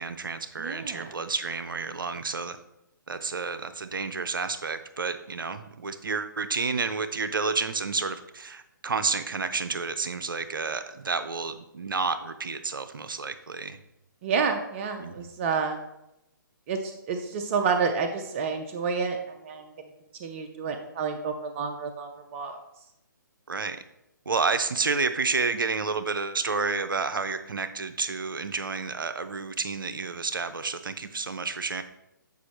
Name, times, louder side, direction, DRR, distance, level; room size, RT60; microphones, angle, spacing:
voice 1, 0.0-2.6 3.1-13.8 15.0-15.3 23.5-23.8 24.3-31.8, right 4 dB, 80° right, 10 dB, 0.5 m, -30 dB
voice 2, 0.6-1.1 14.2-15.8 16.7-19.7 20.2-22.6, right 5 dB, 35° right, 5 dB, 0.6 m, -29 dB
8.1 x 5.0 x 3.0 m, 0.87 s
figure-of-eight pair, 135°, 11 cm